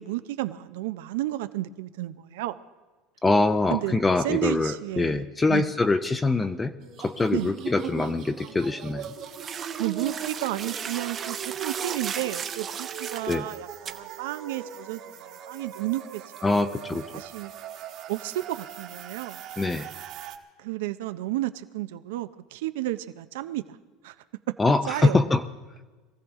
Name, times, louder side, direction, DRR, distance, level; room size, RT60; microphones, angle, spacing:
voice 1, 0.0-2.6 3.7-5.7 7.3-7.5 9.8-16.2 16.5-16.8 17.1-17.5 18.1-19.4 20.6-23.8 24.0-24.2 24.5-24.6 24.9-25.2, right 16 dB, 85° right, 12 dB, 0.5 m, -32 dB
voice 2, 3.2-6.7 7.0-9.1 13.3-13.5 16.4-17.0 19.6-19.9 24.6-25.4, left 3 dB, 15° left, 9 dB, 0.5 m, -24 dB
sound 1, 6.8-20.4, right 9 dB, 50° right, 1.4 m, -40 dB
sound 2, 9.0-13.4 13.9-14.0, right 7 dB, 30° right, 0.8 m, -36 dB
23.0 x 15.0 x 3.6 m, 1.3 s
supercardioid pair, 145°, 0 cm